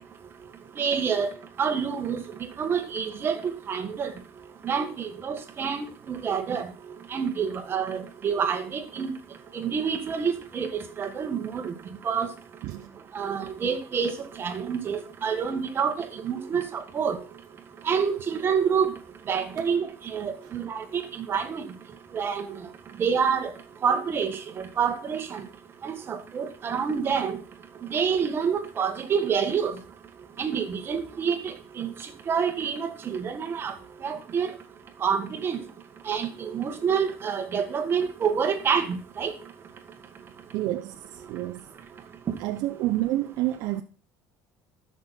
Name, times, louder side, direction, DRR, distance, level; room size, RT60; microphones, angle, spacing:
voice 1, 0.8-1.3 1.6-2.2 2.6-4.1 4.6-6.7 7.1-9.1 9.5-11.7 12.0-12.3 13.1-14.1 14.4-17.2 17.8-18.9 19.3-21.6 22.1-22.5 23.0-23.5 23.8-24.4 24.8-25.4 25.8-27.4 27.9-29.7 30.4-31.9 32.3-33.7 34.0-34.5 35.0-35.6 36.1-39.3, right 6 dB, 30° right, 1.7 m, -27 dB
voice 2, 40.5-41.7 42.4-43.8, right 15 dB, 70° right, 0.7 m, -29 dB
13.5 x 6.3 x 4.3 m
cardioid pair, 135°, 7 cm